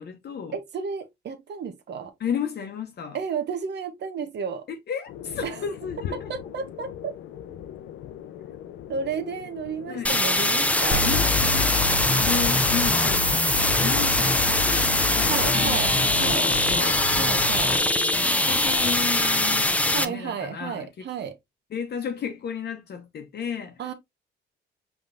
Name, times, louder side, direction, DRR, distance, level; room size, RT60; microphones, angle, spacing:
voice 1, 0.0-0.6 2.2-3.2 4.7-6.3 9.9-10.2 11.0-11.8 12.2-13.4 13.8-17.1 17.7-21.1 21.7-23.8, left 7 dB, 55° left, 0.9 m, -33 dB
voice 2, 0.5-2.1 3.1-4.7 5.4-5.6 6.3-7.2 8.9-11.1 15.3-15.9 16.2-16.5 17.2-17.7 19.9-21.3 23.8-23.9, right 6 dB, 60° right, 1.0 m, -32 dB
sound 1, 5.1-14.4, left 10 dB, 85° left, 0.6 m, -41 dB
sound 2, 10.0-20.0, left 1 dB, 5° left, 0.5 m, -22 dB
sound 3, 10.9-17.8, left 2 dB, 30° left, 1.1 m, -29 dB
5.2 x 3.5 x 2.5 m
cardioid pair, 90°, 20 cm